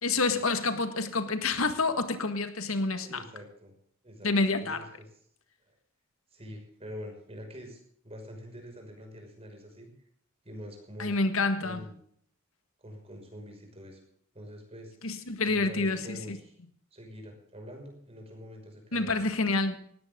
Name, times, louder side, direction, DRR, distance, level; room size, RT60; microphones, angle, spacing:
voice 1, 0.0-3.2 4.2-4.9 11.0-11.8 15.0-16.4 18.9-19.8, left 3 dB, 75° left, 9 dB, 1.8 m, -28 dB
voice 2, 3.0-3.7 4.0-4.3 4.6-4.8 5.6-5.7 6.3-9.9 10.4-11.1 11.6-11.9 12.8-14.0 14.3-16.6 16.9-19.1, equal, 30° right, 2 dB, 6.0 m, -45 dB
19.0 x 16.5 x 3.8 m, 0.63 s
head